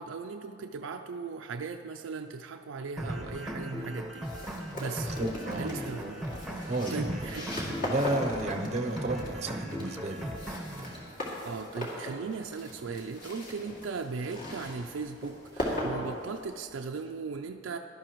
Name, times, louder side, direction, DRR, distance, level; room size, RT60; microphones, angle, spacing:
voice 1, 0.0-4.3 4.8-5.1 5.6-7.5 11.4-17.8, right 4 dB, 80° right, 4 dB, 0.4 m, -38 dB
sound 1, 3.0-11.0, right 1 dB, ahead, 1.0 m, -38 dB
sound 2, 4.2-16.8, left 1 dB, 45° left, 2.4 m, -39 dB
voice 2, 5.2-5.9 6.7-7.3 7.9-10.4, right 2 dB, 35° right, 5 dB, 0.6 m, -32 dB
17.5 x 12.0 x 3.0 m, 2.4 s
head